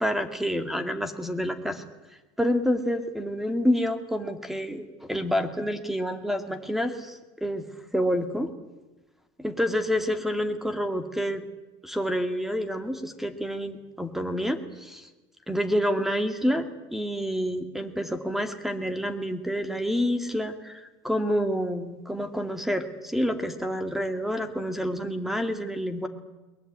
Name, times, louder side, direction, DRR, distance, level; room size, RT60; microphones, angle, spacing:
voice 1, 0.0-1.8 2.4-7.7 7.9-8.5 9.4-11.4 11.8-15.1 15.5-16.7 16.9-26.1, equal, ahead, 9 dB, 2.2 m, -28 dB
22.0 x 20.5 x 9.5 m, 1.1 s
cardioid pair, 135°, 13 cm